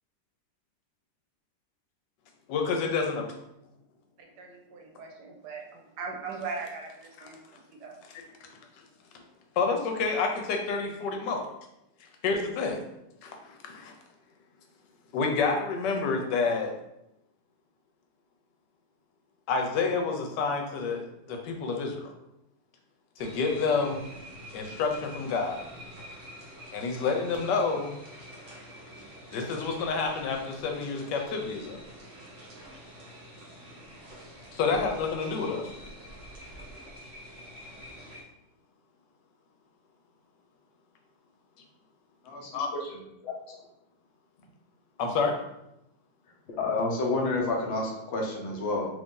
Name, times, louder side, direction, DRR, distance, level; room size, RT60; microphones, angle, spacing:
voice 1, 2.5-3.3 8.1-8.5 9.6-11.5 12.2-12.8 13.2-13.9 15.1-16.7 19.5-22.1 23.2-24.1 24.5-25.7 26.7-28.0 29.3-31.8 34.5-35.7 42.5-42.7 45.0-45.3, left 4 dB, 80° left, 3 dB, 1.3 m, -29 dB
voice 2, 4.2-7.9, right 4 dB, 75° right, 1 dB, 1.1 m, -40 dB
sound 1, 23.2-38.2, equal, 45° right, 0.7 m, -47 dB
voice 3, 46.6-48.9, left 3 dB, 55° left, -1 dB, 0.8 m, -29 dB
3.0 x 2.6 x 3.6 m, 0.84 s
omnidirectional pair, 1.9 m